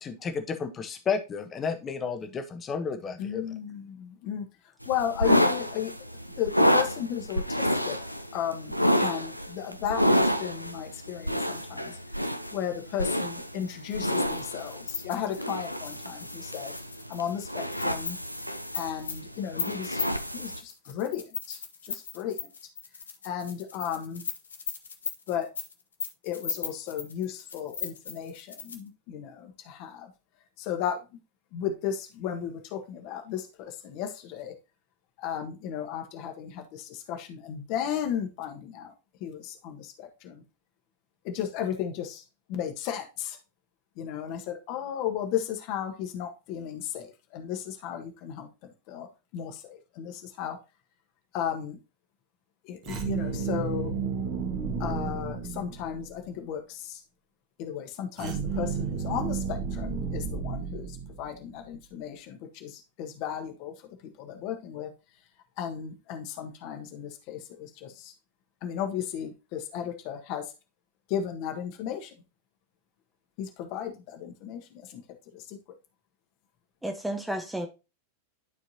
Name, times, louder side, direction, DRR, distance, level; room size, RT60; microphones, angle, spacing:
voice 1, 0.0-3.4, left 5 dB, 25° left, 1.3 m, -32 dB
voice 2, 3.2-4.4 4.8-5.9 6.4-8.0 8.3-12.0 12.5-16.7 17.1-18.2 18.7-20.0 20.3-22.4 23.2-24.2 25.3-25.5 26.2-30.1 30.6-31.0 31.5-34.5 35.2-38.9 39.2-40.4 41.2-42.2 42.5-43.4 44.0-48.5 48.9-49.1 49.3-50.6 51.3-51.8 52.6-53.9 54.8-57.0 57.6-63.7 64.2-64.9 65.6-68.1 68.6-70.4 71.1-72.1 73.4-74.6 74.9-75.0 75.3-75.6, left 9 dB, 45° left, 1.5 m, -34 dB
sound 1, 4.8-20.6, equal, 90° right, 0.5 m, -29 dB
sound 2, 13.5-28.9, left 5 dB, 70° left, 1.3 m, -38 dB
sound 3, 52.8-56.2 58.2-61.5, right 5 dB, 40° right, 1.7 m, -32 dB
voice 3, 76.8-77.7, right 1 dB, 5° right, 1.0 m, -33 dB
12.0 x 4.6 x 2.8 m
figure-of-eight pair, 90°, 0 cm